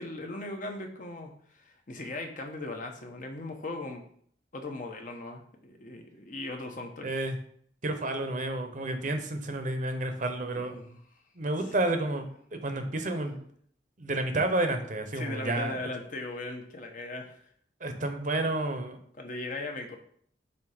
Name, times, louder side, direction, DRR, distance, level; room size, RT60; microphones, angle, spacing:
voice 1, 0.0-4.0 4.5-7.1 10.5-11.0 11.7-11.8 12.7-12.9 15.1-17.4 19.2-20.0, left 2 dB, 45° left, 3 dB, 0.8 m, -38 dB
voice 2, 7.0-7.3 7.8-10.7 11.4-13.4 14.0-15.8 17.8-19.0, right 2 dB, 45° right, 6 dB, 0.8 m, -30 dB
7.0 x 2.8 x 4.9 m, 0.62 s
head